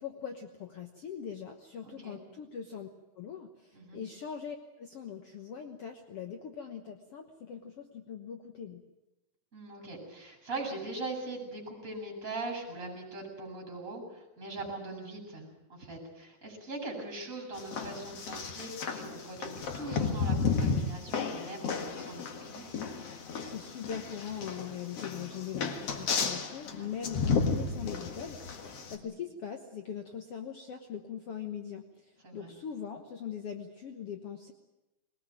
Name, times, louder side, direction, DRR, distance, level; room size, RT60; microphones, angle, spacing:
voice 1, 0.0-2.9 3.2-8.8 23.5-34.5, left 8 dB, 70° left, 5 dB, 1.4 m, -41 dB
voice 2, 1.8-2.2 3.7-4.0 9.5-22.2 22.5-22.6 26.5-26.9 28.9-29.1 32.2-32.5, right 2 dB, 20° right, 1 dB, 7.9 m, -41 dB
sound 1, 17.5-28.9, left 5 dB, 50° left, 2.1 m, -33 dB
21.0 x 20.5 x 9.1 m, 0.99 s
omnidirectional pair, 4.6 m